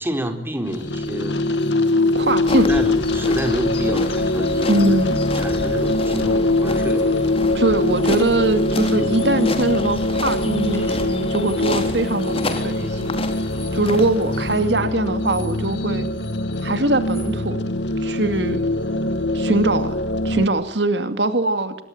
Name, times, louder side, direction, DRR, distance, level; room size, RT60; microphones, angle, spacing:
voice 1, 0.0-1.4 2.7-4.9 5.3-7.1, right 1 dB, 15° right, 6 dB, 4.2 m, -28 dB
sound 1, 0.6-20.5, left 2 dB, 75° left, 2.2 m, -22 dB
voice 2, 2.1-2.8 4.7-5.2 7.5-13.2 13.7-16.1 16.6-17.7 18.0-18.6 19.3-21.8, right 2 dB, 75° right, 9 dB, 2.4 m, -22 dB
sound 2, 2.5-14.6, left 2 dB, 35° left, 3.6 m, -32 dB
sound 3, 6.6-7.2 7.8-8.7 8.9-9.6 9.9-15.8 16.0-17.3, left 2 dB, 15° left, 5.9 m, -46 dB
25.5 x 22.5 x 9.3 m, 0.69 s
head